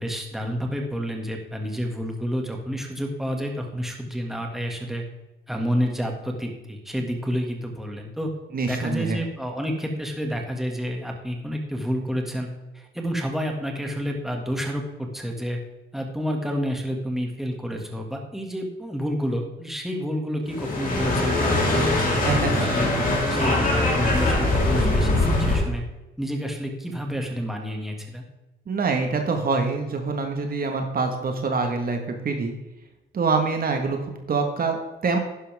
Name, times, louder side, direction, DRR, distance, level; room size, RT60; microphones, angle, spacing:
voice 1, 0.0-5.0 5.5-8.3 8.6-15.6 15.9-22.9 23.3-25.8 26.2-28.2, equal, ahead, 1 dB, 2.1 m, -29 dB
voice 2, 8.5-9.2 22.2-22.5 28.7-32.5 33.1-35.2, right 4 dB, 45° right, 4 dB, 1.6 m, -25 dB
sound 1, 20.5-25.7, left 2 dB, 45° left, 3.8 m, -22 dB
11.5 x 10.0 x 3.6 m, 1.0 s
cardioid pair, 90°, 20 cm